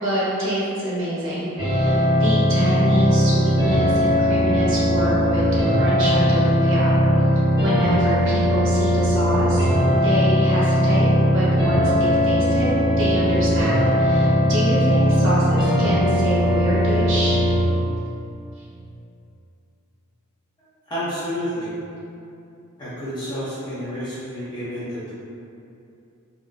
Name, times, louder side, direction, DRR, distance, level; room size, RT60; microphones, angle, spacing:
voice 1, 0.0-5.5 5.8-6.9 7.6-9.7 10.0-11.1 11.3-12.7 13.0-17.4 24.7-24.8, right 1 dB, 60° right, -7 dB, 0.7 m, -26 dB
sound 1, 1.6-17.6, equal, 20° right, 0.9 m, -19 dB
voice 2, 20.9-21.7 22.8-25.1, equal, 20° left, -11 dB, 0.6 m, -30 dB
2.4 x 2.1 x 3.8 m, 2.6 s
head